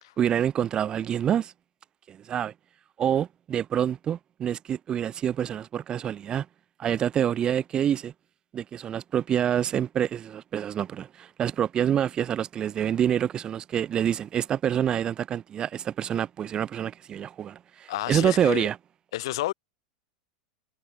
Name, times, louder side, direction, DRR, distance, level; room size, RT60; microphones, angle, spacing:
voice 1, 0.2-1.5 2.1-2.5 3.0-6.5 6.8-8.1 8.5-18.8, right 9 dB, 30° right, 0.7 m, -27 dB
voice 2, 17.9-18.7 19.1-19.5, left 16 dB, 60° left, 1.9 m, -30 dB
figure-of-eight pair, 90°, 3 cm